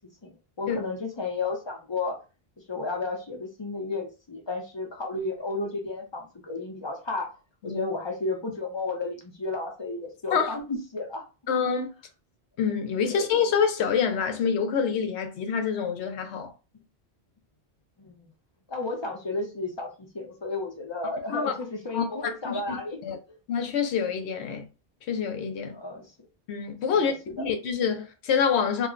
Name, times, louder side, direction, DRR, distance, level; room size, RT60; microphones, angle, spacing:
voice 1, 0.6-2.2 2.7-7.3 7.6-11.2 13.0-13.2 18.0-18.3 18.7-23.0 23.3-23.4 25.7-26.1 26.9-27.5, left 3 dB, 30° left, 0.6 m, -33 dB
voice 2, 11.5-11.9 12.6-16.5 21.3-21.5 21.9-22.0 22.4-22.8 23.0-23.2 23.5-24.7 25.1-25.8 26.5-28.9, left 6 dB, 80° left, 0.9 m, -26 dB
2.4 x 2.1 x 3.7 m
omnidirectional pair, 1.1 m